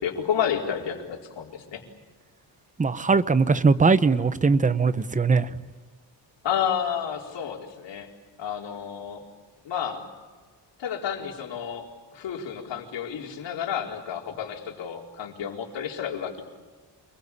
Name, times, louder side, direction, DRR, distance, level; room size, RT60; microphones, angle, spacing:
voice 1, 0.0-1.8 6.4-8.1 8.4-9.2 9.6-10.0 10.8-11.8 12.1-16.4, left 8 dB, 90° left, 1 dB, 4.5 m, -30 dB
voice 2, 2.8-5.5, right 4 dB, 20° right, 13 dB, 0.9 m, -20 dB
28.5 x 22.5 x 8.6 m, 1.4 s
wide cardioid pair, 165°, 42 cm